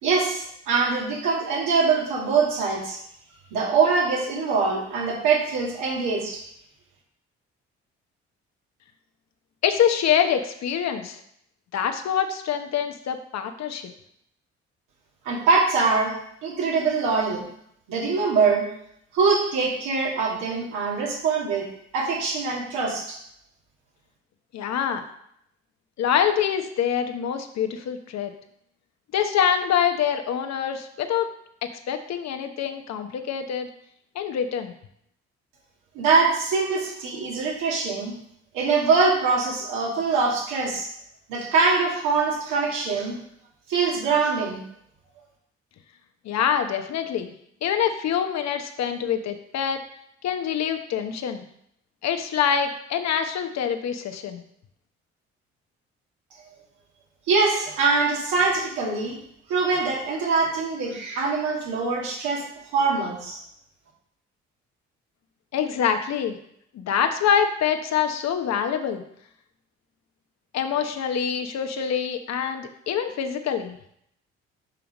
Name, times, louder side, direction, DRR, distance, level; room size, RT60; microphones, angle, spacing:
voice 1, 0.0-3.0 3.5-6.4 15.2-16.1 16.4-17.4 17.9-18.7 19.1-21.7 21.9-23.2 35.9-38.1 38.5-40.9 41.3-43.2 43.7-44.6 57.3-59.2 59.5-62.4 62.7-63.4, right 4 dB, 80° right, -3 dB, 2.2 m, -23 dB
voice 2, 9.6-11.2 11.7-13.9 24.5-25.0 26.0-28.3 29.1-31.3 31.9-33.7 34.1-34.7 46.2-47.3 47.6-49.8 50.2-51.4 52.0-54.4 65.5-66.4 66.7-69.0 70.5-73.8, left 8 dB, 60° left, 7 dB, 1.0 m, -25 dB
5.7 x 5.6 x 5.2 m, 0.72 s
hypercardioid pair, 55°, 30 cm